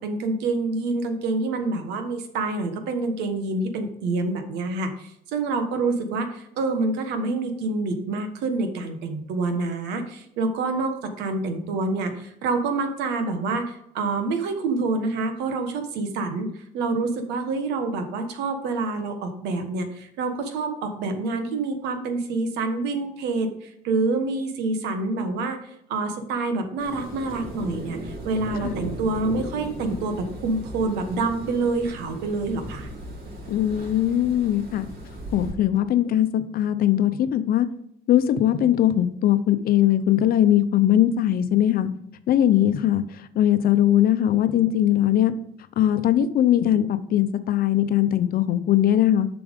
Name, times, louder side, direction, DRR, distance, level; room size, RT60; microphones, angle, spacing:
voice 1, 0.0-32.9, right 3 dB, 90° right, 7 dB, 1.4 m, -27 dB
sound 1, 26.8-35.5, right 1 dB, 60° right, 3.9 m, -37 dB
voice 2, 33.5-34.9 35.3-37.7 38.1-41.9 42.3-45.3 45.8-49.3, left 11 dB, 60° left, 11 dB, 0.8 m, -20 dB
7.2 x 6.0 x 5.2 m, 0.74 s
cardioid pair, 110°, 17 cm